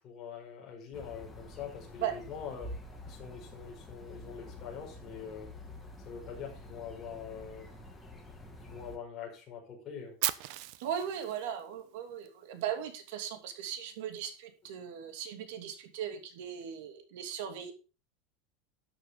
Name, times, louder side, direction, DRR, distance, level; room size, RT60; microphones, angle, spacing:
voice 1, 0.0-2.7 3.0-5.5 6.0-7.7 8.6-10.2, left 7 dB, 25° left, 0 dB, 5.1 m, -44 dB
sound 1, 0.9-9.0, left 1 dB, 5° left, 2.1 m, -48 dB
Fire, 10.2-12.3, right 15 dB, 50° right, 0.8 m, -36 dB
voice 2, 10.8-17.7, right 9 dB, 65° right, 6 dB, 2.7 m, -38 dB
13.0 x 9.0 x 3.8 m, 0.33 s
supercardioid pair, 170°, 0 cm